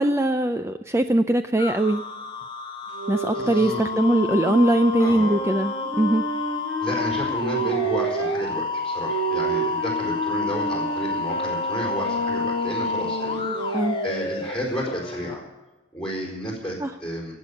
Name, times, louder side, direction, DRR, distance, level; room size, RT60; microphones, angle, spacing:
voice 1, 0.0-2.0 3.1-6.3 13.7-14.0 16.8-16.9, right 1 dB, 15° right, 8 dB, 0.4 m, -21 dB
sound 1, 1.6-15.3, left 4 dB, 25° left, 1.9 m, -30 dB
sound 2, 2.9-8.4 9.0-14.2, right 2 dB, 85° right, 4.5 m, -29 dB
voice 2, 3.3-3.8 5.0-5.4 6.8-15.4 15.9-17.4, equal, 5° left, -1 dB, 4.3 m, -32 dB
16.0 x 8.2 x 8.2 m, 1.1 s
head